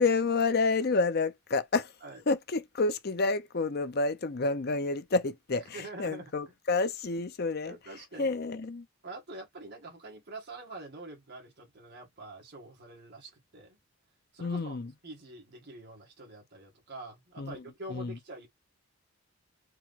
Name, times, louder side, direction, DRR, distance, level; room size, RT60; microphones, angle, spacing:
voice 1, 0.0-1.9 2.3-7.8 8.2-8.9 14.4-14.9 17.4-17.6 17.9-18.2, left 3 dB, 45° left, 0.6 m, -29 dB
voice 2, 5.7-6.3 7.7-8.3 9.0-13.8 14.3-14.8 15.0-18.5, right 2 dB, 50° right, 1.8 m, -45 dB
4.7 x 2.2 x 4.0 m
head